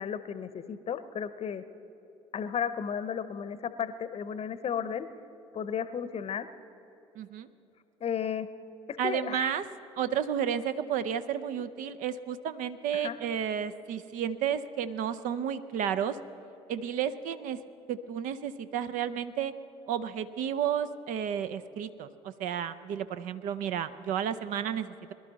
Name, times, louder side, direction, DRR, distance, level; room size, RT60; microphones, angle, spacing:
voice 1, 0.0-1.6 2.3-5.1 5.5-6.5 8.0-8.5 8.9-9.5 12.9-13.2, left 8 dB, 40° left, 13 dB, 0.8 m, -34 dB
voice 2, 7.2-7.5 9.0-9.6 10.0-16.2 16.7-17.6 17.9-19.5 19.9-25.1, right 9 dB, 60° right, 13 dB, 0.6 m, -32 dB
22.0 x 11.5 x 4.1 m, 2.9 s
figure-of-eight pair, 55°, 16 cm